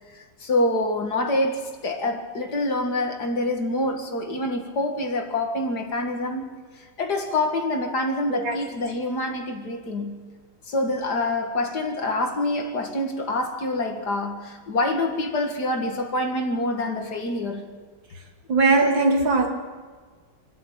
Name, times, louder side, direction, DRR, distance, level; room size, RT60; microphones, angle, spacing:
voice 1, 0.1-10.2 10.7-17.7, left 2 dB, 55° left, 2.5 m, -26 dB
voice 2, 18.5-19.5, right 3 dB, 85° right, 3.3 m, -19 dB
25.5 x 11.5 x 8.9 m
omnidirectional pair, 2.1 m